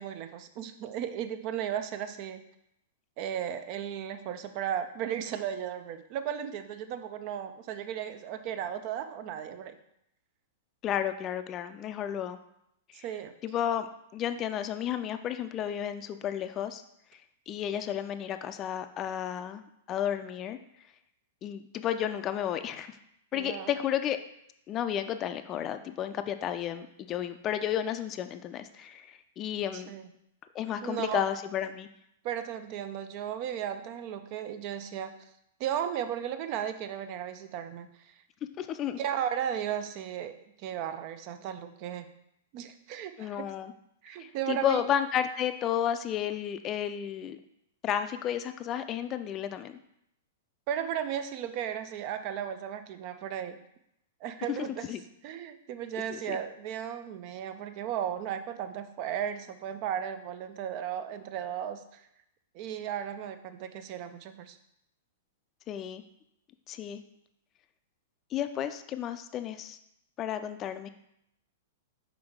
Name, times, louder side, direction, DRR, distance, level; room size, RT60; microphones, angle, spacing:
voice 1, 0.0-2.4 3.2-9.8 13.0-13.3 23.3-23.7 29.7-30.1 30.8-31.3 32.2-35.1 35.6-38.1 39.0-42.1 42.5-43.5 44.0-44.8 50.7-53.6 54.2-54.9 55.2-62.0 62.5-64.6, right 9 dB, 45° right, 9 dB, 0.6 m, -35 dB
voice 2, 10.8-12.4 12.9-13.1 13.4-13.9 14.1-16.8 17.5-19.6 19.9-20.6 21.4-23.0 23.3-24.2 24.7-29.9 30.5-31.9 38.6-39.0 43.2-43.7 44.2-47.4 47.8-49.8 54.9-55.0 56.1-56.4 65.7-66.0 66.7-67.0 68.3-69.8 70.2-70.9, left 10 dB, 30° left, 9 dB, 0.5 m, -32 dB
6.0 x 4.6 x 3.6 m, 0.77 s
figure-of-eight pair, 105°, 0 cm